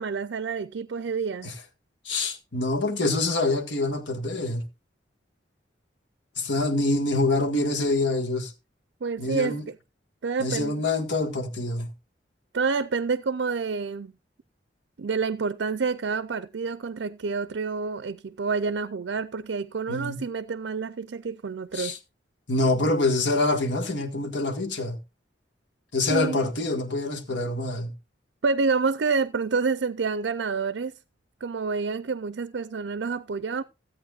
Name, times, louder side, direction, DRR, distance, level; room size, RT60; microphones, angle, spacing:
voice 1, 0.0-1.5 9.0-9.7 10.2-10.8 12.5-14.1 15.0-22.0 26.1-26.5 28.4-30.9 31.4-33.6, right 4 dB, 75° right, 0.5 m, -28 dB
voice 2, 2.0-4.6 6.4-8.5 9.2-9.6 10.4-11.9 19.9-20.2 21.7-22.0 22.5-25.0 25.9-27.9, left 2 dB, 75° left, 1.8 m, -26 dB
16.0 x 8.6 x 2.4 m
head